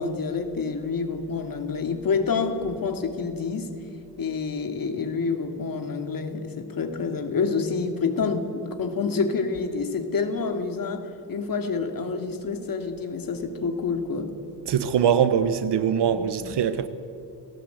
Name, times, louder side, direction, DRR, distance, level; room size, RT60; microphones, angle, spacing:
voice 1, 0.0-3.7 4.2-14.3 16.1-16.6, left 4 dB, 55° left, 2.7 m, -28 dB
voice 2, 14.7-16.9, right 8 dB, 85° right, 1.5 m, -22 dB
30.0 x 18.5 x 8.2 m
wide cardioid pair, 130°, 40 cm